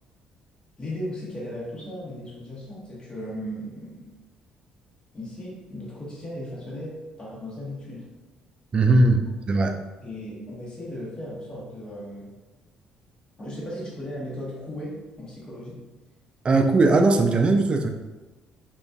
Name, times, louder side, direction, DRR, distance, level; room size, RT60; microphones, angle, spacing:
voice 1, 0.8-4.1 5.1-8.1 10.0-12.3 13.4-15.8, equal, 30° left, -6 dB, 1.0 m, -36 dB
voice 2, 8.7-9.8 16.4-17.9, right 2 dB, 35° right, 5 dB, 0.3 m, -19 dB
2.4 x 2.3 x 2.2 m, 1.1 s
supercardioid pair, 65°, 3 cm